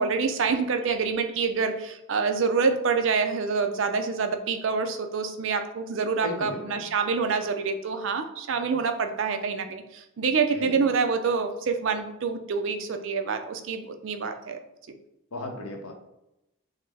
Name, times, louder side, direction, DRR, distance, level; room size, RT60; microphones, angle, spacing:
voice 1, 0.0-14.6, right 5 dB, 55° right, 7 dB, 0.4 m, -26 dB
voice 2, 6.2-6.8 10.5-10.8 15.3-15.9, left 2 dB, 80° left, 3 dB, 0.8 m, -35 dB
5.4 x 2.0 x 3.3 m, 0.89 s
head